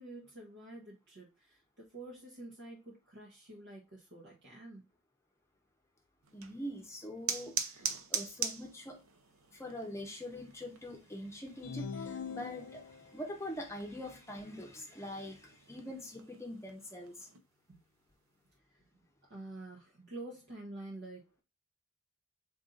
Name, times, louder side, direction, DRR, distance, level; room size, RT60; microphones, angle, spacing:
voice 1, 0.0-4.8 17.7-17.8 18.9-19.0 19.3-21.4, right 2 dB, 55° right, -3 dB, 1.0 m, -48 dB
sound 1, 6.2-17.4, right 6 dB, 75° right, 0.6 m, -43 dB
voice 2, 6.3-9.0 9.5-17.3, left 1 dB, 15° left, 1 dB, 0.7 m, -44 dB
sound 2, 11.6-13.2, left 5 dB, 70° left, 0.5 m, -42 dB
3.9 x 2.7 x 3.8 m, 0.26 s
head